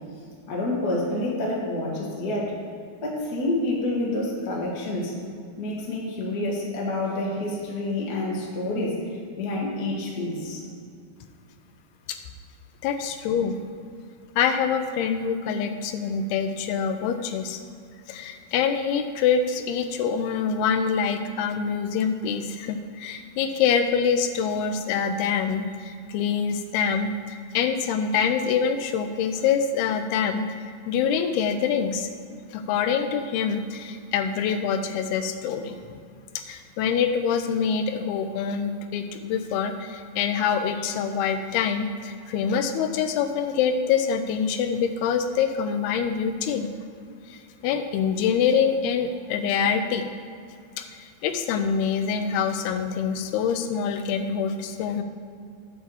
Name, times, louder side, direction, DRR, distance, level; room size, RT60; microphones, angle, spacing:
voice 1, 0.5-2.6 3.0-5.1 5.6-9.0 9.4-10.6, left 2 dB, 65° left, -4 dB, 0.9 m, -28 dB
voice 2, 12.8-13.6 14.4-17.6 18.1-30.4 30.9-32.1 32.5-35.8 36.5-46.7 47.3-50.1 50.8-55.0, left 6 dB, 80° left, 8 dB, 2.5 m, -25 dB
8.5 x 4.7 x 7.0 m, 2.4 s
omnidirectional pair, 4.7 m